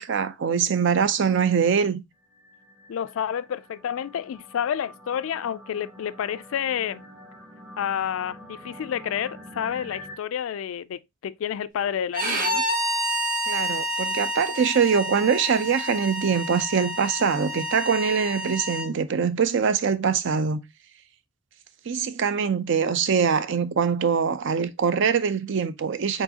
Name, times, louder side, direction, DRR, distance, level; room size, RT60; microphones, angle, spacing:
voice 1, 0.0-2.0 13.5-20.6 21.9-26.2, right 6 dB, 60° right, 0.5 m, -23 dB
sound 1, 2.2-10.2, left 1 dB, 5° right, 0.6 m, -46 dB
voice 2, 2.9-7.1 7.8-12.6, left 9 dB, 70° left, 0.3 m, -29 dB
Bowed string instrument, 12.1-18.9, equal, 40° right, 1.0 m, -29 dB
4.6 x 4.0 x 2.8 m
head